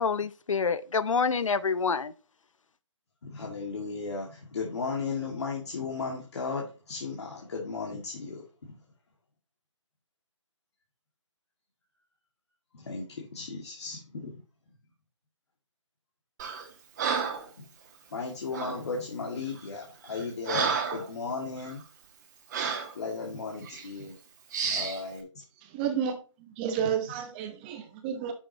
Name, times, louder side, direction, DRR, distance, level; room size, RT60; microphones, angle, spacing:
voice 1, 0.0-2.1, left 5 dB, 80° left, 0.6 m, -27 dB
voice 2, 3.2-8.7 12.7-14.3 17.6-17.7 18.1-21.8 22.9-24.2 24.6-25.3, left 4 dB, 55° left, 2.2 m, -35 dB
Breathing, 16.4-16.7 17.0-17.5 18.5-18.8 19.5-19.6 20.1-21.1 21.6-21.7 22.5-22.9 23.6-23.9 24.5-25.0, right 6 dB, 35° right, 1.7 m, -31 dB
voice 3, 25.6-28.3, right 8 dB, 20° right, 1.0 m, -31 dB
11.0 x 6.3 x 2.9 m
hypercardioid pair, 155°, 16 cm